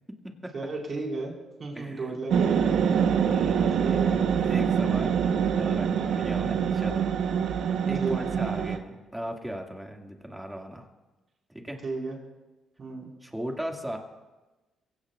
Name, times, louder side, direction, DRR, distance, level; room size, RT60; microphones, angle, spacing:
voice 1, 0.5-1.3 1.6-2.9 3.8-4.3 8.0-8.4 11.8-12.2 12.8-13.1, right 3 dB, 45° right, -1 dB, 4.9 m, -34 dB
voice 2, 1.7-2.1 2.8-4.0 4.4-5.2 5.5-7.1 7.8-10.9 11.5-11.8 13.2-14.0, equal, 10° right, 2 dB, 2.2 m, -37 dB
sound 1, 2.3-8.8, right 7 dB, 75° right, 1.1 m, -25 dB
24.0 x 16.5 x 2.5 m, 1.1 s
cardioid pair, 90°, 0 cm